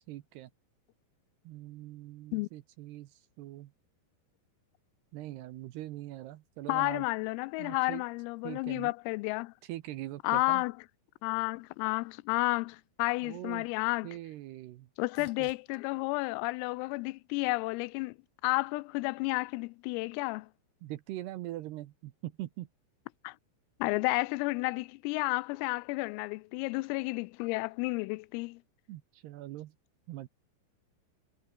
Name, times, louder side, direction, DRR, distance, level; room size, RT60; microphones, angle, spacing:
voice 1, 0.1-0.5 1.4-3.7 5.1-7.1 7.6-8.0 8.4-8.9 9.6-10.6 13.2-13.7 14.0-14.9 15.2-15.5 20.8-22.7 28.9-29.7 30.1-30.3, right 15 dB, 75° right, 2.5 m, -42 dB
voice 2, 6.7-9.5 10.2-10.7 11.2-14.1 15.0-18.2 18.4-20.5 23.2-23.4 23.8-28.6, left 25 dB, 90° left, 3.3 m, -31 dB
sound 1, 14.1-17.6 18.1-18.8 26.6-26.7, left 6 dB, 40° left, 4.7 m, -64 dB
omnidirectional pair, 5.9 m